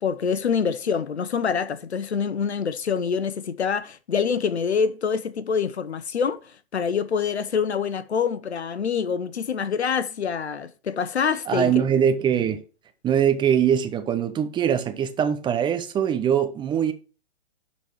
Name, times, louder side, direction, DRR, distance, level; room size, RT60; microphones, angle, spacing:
voice 1, 0.0-6.4 6.7-11.9, left 6 dB, 85° left, 1.0 m, -25 dB
voice 2, 11.5-12.6 13.0-16.9, right 8 dB, 15° right, 0.7 m, -22 dB
11.5 x 4.3 x 4.8 m
hypercardioid pair, 125°, 32 cm